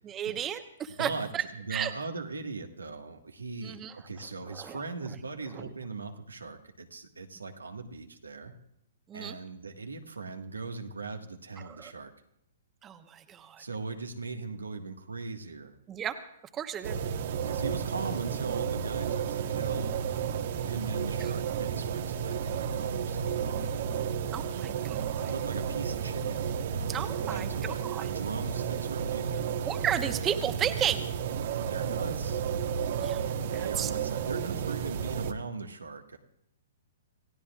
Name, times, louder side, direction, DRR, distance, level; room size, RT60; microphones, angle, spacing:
voice 1, 0.0-1.4 1.7-1.9 3.6-3.9 4.5-4.8 5.6-5.7 9.1-9.4 11.7-11.9 12.8-13.6 15.9-16.2 16.5-17.0 21.2-21.3 24.3-25.2 26.9-28.1 29.6-31.0 33.0-33.3 33.5-33.9, right 9 dB, 20° right, 8 dB, 1.0 m, -33 dB
voice 2, 1.0-8.5 9.1-12.1 13.6-15.7 17.4-19.9 20.6-23.7 25.1-29.4 31.6-32.4 33.4-36.2, right 4 dB, 85° right, 4 dB, 1.6 m, -39 dB
sound 1, 16.8-35.3, right 7 dB, 55° right, 1.1 m, -32 dB
27.5 x 16.0 x 2.4 m, 0.74 s
figure-of-eight pair, 120°, 0 cm